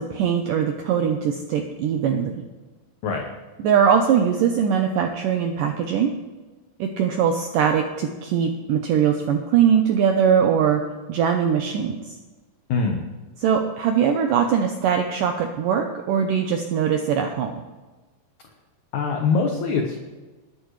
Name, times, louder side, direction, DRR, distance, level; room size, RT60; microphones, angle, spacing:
voice 1, 0.1-2.4 3.6-6.1 6.8-10.8 11.1-12.2 13.4-17.6, right 8 dB, 80° right, 4 dB, 1.9 m, -21 dB
voice 2, 12.7-13.1 18.9-20.0, left 4 dB, 65° left, 2 dB, 2.0 m, -23 dB
20.5 x 10.5 x 3.2 m, 1.2 s
omnidirectional pair, 4.8 m